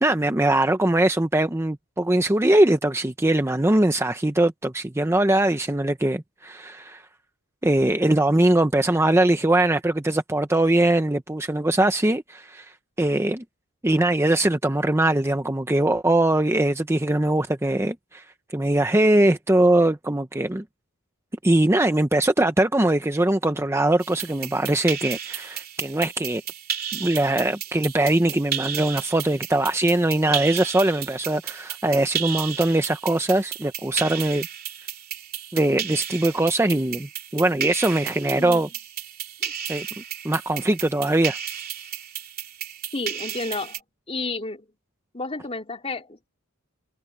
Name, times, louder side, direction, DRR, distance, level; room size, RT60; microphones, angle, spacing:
voice 1, 0.0-7.0 7.6-12.7 13.0-13.4 13.8-18.2 18.5-20.6 21.4-26.4 26.9-34.5 35.5-38.7 39.7-39.9 40.2-41.4, right 1 dB, 10° right, 0.7 m, -21 dB
sound 1, 24.0-43.8, right 9 dB, 45° right, 3.1 m, -33 dB
voice 2, 42.9-43.8 44.1-44.7 45.1-46.3, left 3 dB, 30° left, 3.5 m, -31 dB
head